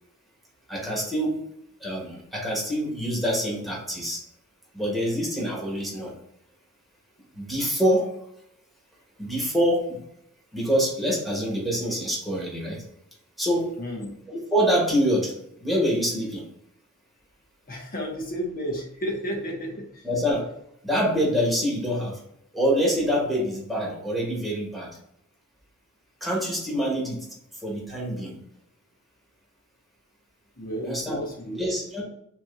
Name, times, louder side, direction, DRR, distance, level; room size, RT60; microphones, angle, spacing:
voice 1, 0.7-1.4 1.8-4.2 4.7-6.1 7.3-8.1 9.2-10.0 10.5-12.8 13.4-13.7 14.3-15.3 15.6-16.4 20.0-20.5 20.8-22.2 22.5-25.0 26.2-27.3 27.6-28.4 30.8-31.2 31.6-32.0, equal, ahead, -3 dB, 1.7 m, -25 dB
voice 2, 13.8-14.1 17.7-20.1 30.6-31.6, equal, 40° left, 0 dB, 1.4 m, -32 dB
6.0 x 3.7 x 2.4 m, 0.76 s
head